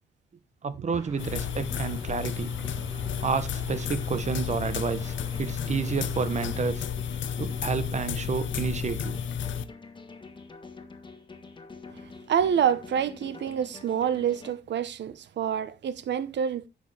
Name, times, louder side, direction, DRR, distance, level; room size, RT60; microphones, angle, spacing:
voice 1, 0.6-2.5 3.2-6.9 7.4-9.2, right 5 dB, 40° right, 1.1 m, -30 dB
sound 1, 0.9-6.7, right 2 dB, 20° right, 1.4 m, -45 dB
sound 2, 1.2-9.6, left 8 dB, 90° left, 0.8 m, -32 dB
sound 3, 1.6-14.5, left 4 dB, 25° left, 1.5 m, -46 dB
voice 2, 12.0-16.7, right 8 dB, 70° right, 1.1 m, -27 dB
10.5 x 7.7 x 3.4 m
wide cardioid pair, 155°, 19 cm